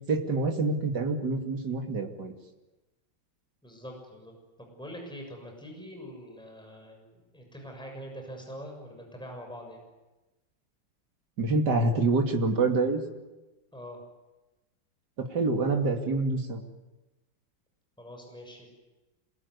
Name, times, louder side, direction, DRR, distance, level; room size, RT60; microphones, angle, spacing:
voice 1, 0.1-2.3 11.4-13.0 15.2-16.6, right 3 dB, 60° right, 3 dB, 3.2 m, -26 dB
voice 2, 3.6-9.8 13.7-14.0 18.0-18.7, equal, ahead, 2 dB, 6.7 m, -44 dB
27.0 x 22.5 x 9.8 m, 1.1 s
omnidirectional pair, 2.1 m